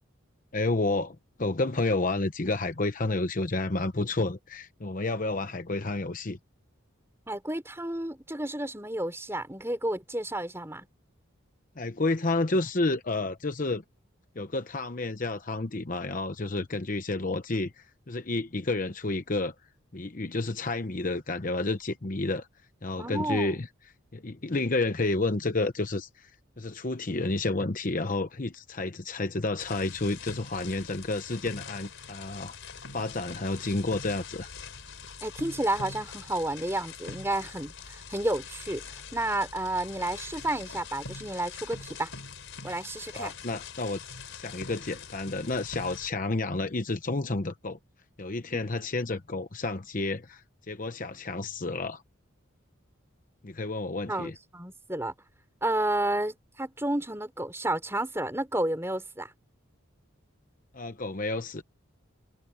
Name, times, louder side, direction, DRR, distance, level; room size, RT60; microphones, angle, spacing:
voice 1, 0.5-6.4 11.8-13.8 14.4-19.5 19.9-22.5 22.8-23.7 24.1-26.3 26.6-32.6 32.9-34.5 43.1-44.0 44.3-47.8 48.2-52.0 53.4-54.3 60.7-61.6, left 2 dB, 40° left, 0.9 m, -30 dB
voice 2, 7.3-10.9 23.0-23.5 35.2-42.1 42.6-43.3 48.5-48.6 54.1-55.1 55.6-59.3, right 1 dB, 10° right, 4.1 m, -31 dB
sound 1, 29.6-46.1, left 5 dB, 65° left, 4.5 m, -43 dB
head